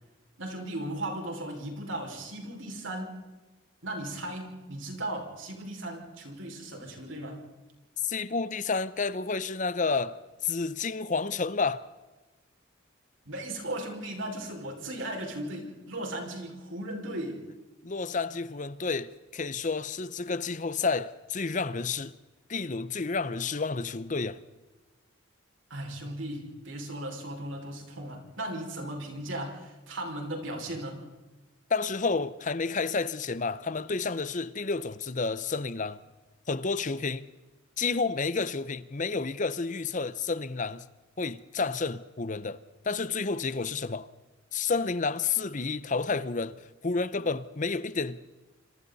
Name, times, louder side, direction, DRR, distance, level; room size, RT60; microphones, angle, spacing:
voice 1, 0.4-3.2 3.8-7.4 13.3-17.5 25.7-31.0, right 1 dB, 75° right, 5.5 m, -37 dB
voice 2, 8.0-10.2 10.4-11.9 17.8-22.1 22.5-24.4 31.7-36.0 36.5-37.3 37.8-40.8 41.2-42.6 42.8-44.1 44.5-46.5 46.8-48.2, left 4 dB, 40° left, 0.7 m, -30 dB
27.0 x 27.0 x 4.1 m
head